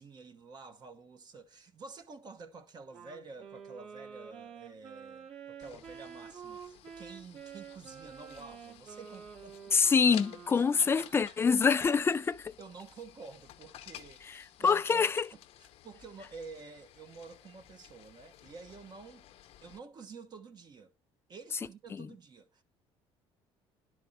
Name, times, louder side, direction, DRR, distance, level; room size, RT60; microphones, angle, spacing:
voice 1, 0.0-9.9 10.6-11.4 12.6-15.1 15.6-19.3 19.6-20.9 21.3-22.6, right 4 dB, 40° right, 1.2 m, -50 dB
Wind instrument woodwind instrument, 2.9-11.2, right 7 dB, 60° right, 3.2 m, -49 dB
sound 1, 5.6-19.8, left 12 dB, 65° left, 0.8 m, -54 dB
voice 2, 9.7-12.5 14.3-15.3 21.9-22.1, left 5 dB, 20° left, 0.5 m, -26 dB
11.0 x 4.7 x 5.7 m
cardioid pair, 120°, 11 cm